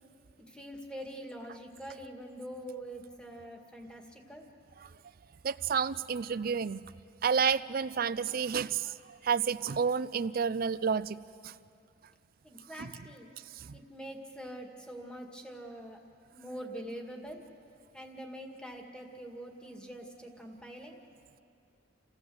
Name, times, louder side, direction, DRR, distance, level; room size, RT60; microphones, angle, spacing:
voice 1, 0.5-4.5 12.4-13.3 13.7-16.0 16.3-17.4 17.9-21.0, right 1 dB, 5° left, 2 dB, 2.0 m, -44 dB
voice 2, 5.4-6.9 7.2-8.9 9.2-11.5 12.8-12.9 13.6-13.7, right 6 dB, 45° right, 14 dB, 0.4 m, -30 dB
29.0 x 15.5 x 7.8 m, 2.4 s
head